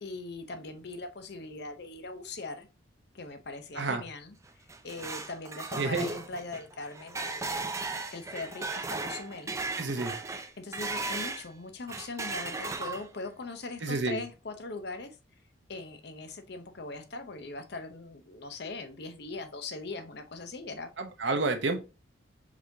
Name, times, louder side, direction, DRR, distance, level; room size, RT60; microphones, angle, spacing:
voice 1, 0.0-2.7 3.1-4.3 4.8-7.6 8.1-9.5 10.3-15.2 15.7-20.9, left 3 dB, 55° left, 0.7 m, -40 dB
sound 1, 4.5-11.5 11.9-13.3, right 3 dB, 15° right, 0.3 m, -36 dB
voice 2, 5.8-6.1 9.8-10.1 13.8-14.2 21.0-21.8, right 3 dB, 65° right, 0.8 m, -29 dB
4.9 x 3.7 x 2.7 m
head